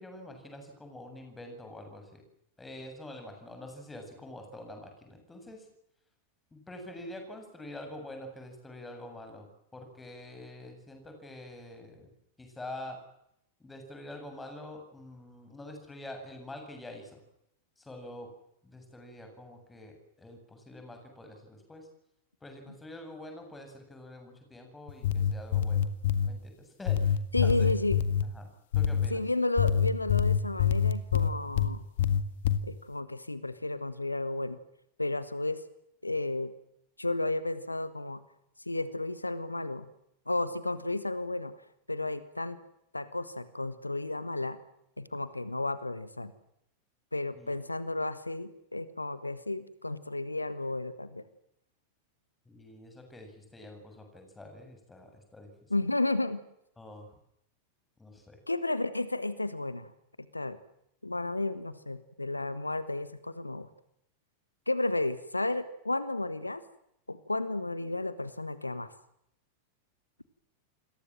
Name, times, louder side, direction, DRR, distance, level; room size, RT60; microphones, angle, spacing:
voice 1, 0.0-2.2 2.6-5.7 6.5-9.5 9.7-12.1 12.4-13.0 13.6-17.2 17.8-18.3 18.6-21.9 22.4-25.9 26.2-27.7 28.2-28.5 28.7-29.2 47.3-47.6 52.5-55.5 56.8-57.1 58.0-58.4, left 1 dB, 10° left, 4 dB, 7.8 m, -46 dB
sound 1, 24.9-26.3 26.9-28.3 28.7-29.1 29.6-31.7 32.0-32.6, left 8 dB, 55° left, 1.9 m, -25 dB
voice 2, 27.3-28.0 29.1-31.8 32.6-34.6 35.0-35.6 36.0-36.5 37.0-38.2 38.7-39.8 40.3-41.5 41.9-42.6 42.9-44.6 45.0-46.3 47.1-51.2 55.7-56.4 58.5-59.9 60.3-60.6 61.0-63.7 64.7-66.6 67.1-68.9, left 2 dB, 85° left, 14 dB, 1.4 m, -32 dB
29.0 x 22.0 x 7.6 m, 0.78 s
figure-of-eight pair, 90°, 0 cm